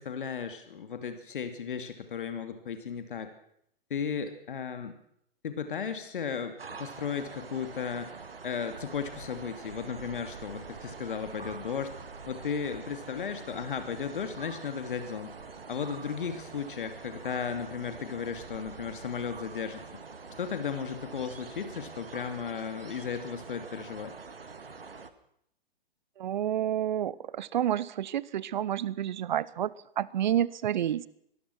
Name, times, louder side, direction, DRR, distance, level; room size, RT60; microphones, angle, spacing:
voice 1, 0.0-3.3 3.9-5.0 5.4-8.1 8.4-11.9 12.3-15.3 15.7-20.0 20.4-24.1, left 7 dB, 60° left, 9 dB, 2.6 m, -35 dB
sound 1, 6.6-25.1, right 4 dB, 75° right, 2.0 m, -45 dB
voice 2, 26.2-31.1, right 11 dB, 50° right, 22 dB, 0.9 m, -29 dB
24.5 x 19.0 x 6.2 m, 0.71 s
figure-of-eight pair, 115°, 30 cm